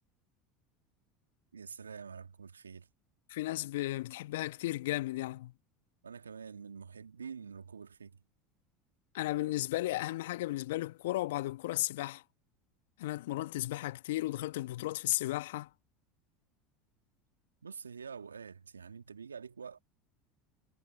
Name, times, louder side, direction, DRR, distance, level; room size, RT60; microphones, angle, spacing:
voice 1, 1.5-2.9 6.0-8.2 17.6-19.8, right 6 dB, 85° right, 1.6 m, -46 dB
voice 2, 3.3-5.5 9.1-12.2 13.0-15.7, left 17 dB, 70° left, 1.2 m, -34 dB
hypercardioid pair, 75°, 0 cm